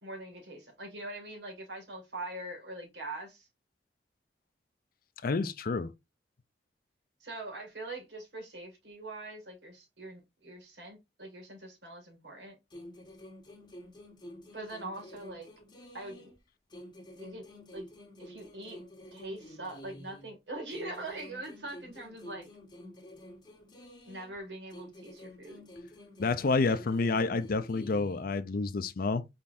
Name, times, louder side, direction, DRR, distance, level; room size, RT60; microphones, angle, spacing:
voice 1, 0.0-3.5 7.2-12.6 14.5-15.5 15.9-16.3 17.1-17.5 17.7-17.9 18.2-18.8 19.1-22.5 24.1-25.7, right 2 dB, 80° right, 2.1 m, -43 dB
voice 2, 5.2-5.9 26.2-29.2, left 3 dB, 55° left, 0.5 m, -29 dB
sound 1, 12.7-16.4 16.7-20.3 20.7-24.4 24.7-28.3, left 1 dB, 25° left, 1.4 m, -50 dB
4.3 x 3.8 x 2.6 m
head